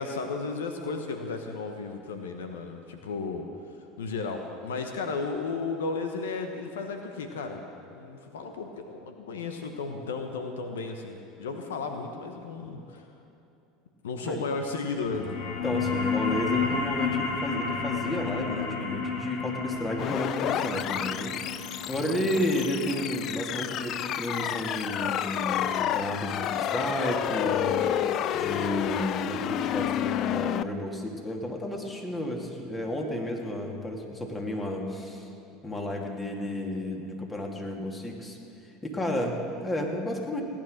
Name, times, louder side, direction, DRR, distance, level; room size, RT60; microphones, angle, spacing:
voice 1, 0.0-13.1 14.0-15.3 21.7-22.0, left 4 dB, 85° left, 5 dB, 1.1 m, -34 dB
sound 1, 15.0-26.1, left 5 dB, 70° left, 2.0 m, -32 dB
voice 2, 15.6-27.8 28.3-35.3 35.6-38.4 38.8-40.4, left 1 dB, 20° left, 1 dB, 2.7 m, -32 dB
sound 2, 20.0-30.6, left 10 dB, 50° left, 0.5 m, -30 dB
17.5 x 10.5 x 6.5 m, 2.8 s
hypercardioid pair, 85°, 0 cm